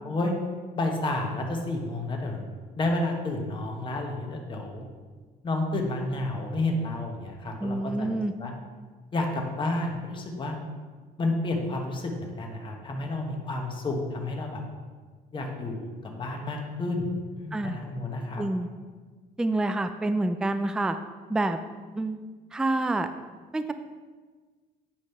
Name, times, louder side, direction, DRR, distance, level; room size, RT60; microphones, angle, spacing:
voice 1, 0.8-2.5 2.8-4.9 5.4-8.5 9.1-10.6 11.2-14.6 15.3-18.4, left 2 dB, 30° left, 1 dB, 1.1 m, -30 dB
voice 2, 7.6-8.3 17.5-17.8 18.4-18.7 19.4-21.0 21.3-21.6 22.0-22.2 22.5-23.1 23.5-23.7, right 2 dB, 5° right, 9 dB, 0.3 m, -27 dB
8.5 x 3.0 x 5.5 m, 1.4 s
cardioid pair, 110°, 17 cm